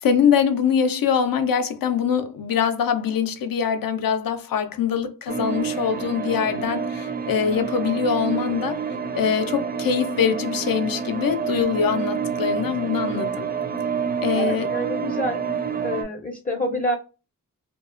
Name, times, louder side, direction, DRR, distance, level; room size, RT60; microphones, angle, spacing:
voice 1, 0.0-8.8 9.1-13.5 14.2-14.7, left 7 dB, 75° left, 0.5 m, -23 dB
sound 1, 5.3-16.0, right 6 dB, 25° right, 0.4 m, -28 dB
voice 2, 14.3-15.4 15.8-17.0, equal, 25° left, 0.5 m, -28 dB
2.9 x 2.0 x 2.4 m
wide cardioid pair, 70°, 35 cm